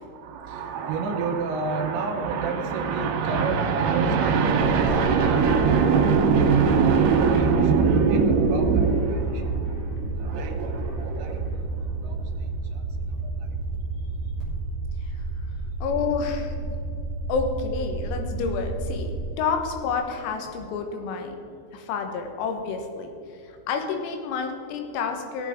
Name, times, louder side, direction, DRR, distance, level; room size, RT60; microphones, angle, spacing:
voice 1, 0.0-14.5 15.6-15.7, right 5 dB, 75° right, 2 dB, 2.8 m, -24 dB
sound 1, 2.2-2.9 3.3-5.4 5.7-7.7 8.1-10.2 10.5-11.8, left 2 dB, 70° left, 3.7 m, -47 dB
sound 2, 4.5-19.2, right 2 dB, 35° left, 2.9 m, -31 dB
voice 2, 15.8-16.7 17.3-19.1 19.4-21.4 21.7-23.1 23.4-25.5, left 5 dB, 85° left, 4 dB, 3.9 m, -29 dB
18.0 x 8.1 x 3.6 m, 2.7 s
omnidirectional pair, 6.0 m